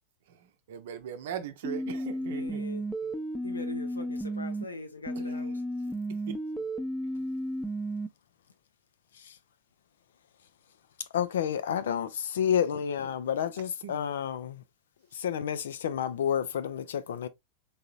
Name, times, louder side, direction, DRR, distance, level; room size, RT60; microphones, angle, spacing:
voice 1, 0.7-2.6 3.0-3.1 5.1-5.6 6.3-6.4 13.8-13.9, right 9 dB, 55° right, 0.7 m, -39 dB
sound 1, 1.6-4.6 5.1-8.1, right 1 dB, 5° left, 0.6 m, -33 dB
voice 2, 2.2-2.8 3.4-5.6, left 2 dB, 80° left, 0.8 m, -42 dB
voice 3, 11.1-14.6 15.1-17.3, left 9 dB, 60° left, 0.5 m, -30 dB
4.1 x 3.8 x 2.3 m
figure-of-eight pair, 90°, 0 cm